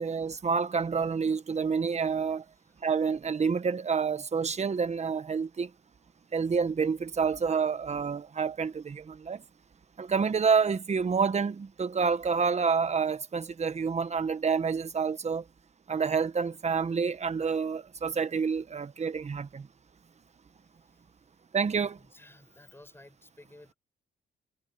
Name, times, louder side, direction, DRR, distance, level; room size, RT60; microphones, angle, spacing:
voice 1, 0.0-2.4 2.8-5.7 6.3-9.4 10.0-15.4 15.9-19.7 21.5-22.0, right 5 dB, 35° right, 1.4 m, -28 dB
voice 2, 20.8-21.1 22.0-23.7, left 2 dB, 10° left, 6.6 m, -55 dB
cardioid pair, 90°, 20 cm